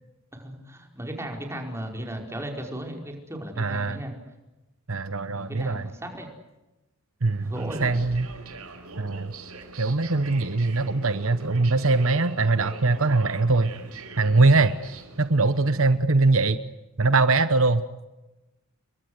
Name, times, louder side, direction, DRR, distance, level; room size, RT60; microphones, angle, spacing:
voice 1, 0.3-4.1 5.2-6.3 7.4-8.0, right 1 dB, 10° right, 2 dB, 4.9 m, -36 dB
voice 2, 3.6-4.0 4.9-5.9 7.2-7.5 7.8-8.3 9.0-9.3 9.8-13.7 14.2-14.7 15.2-16.6 17.0-17.8, right 3 dB, 65° right, 11 dB, 1.1 m, -22 dB
sound 1, 7.2-15.9, right 3 dB, 85° right, 4.8 m, -43 dB
30.0 x 22.5 x 8.0 m, 1.0 s
head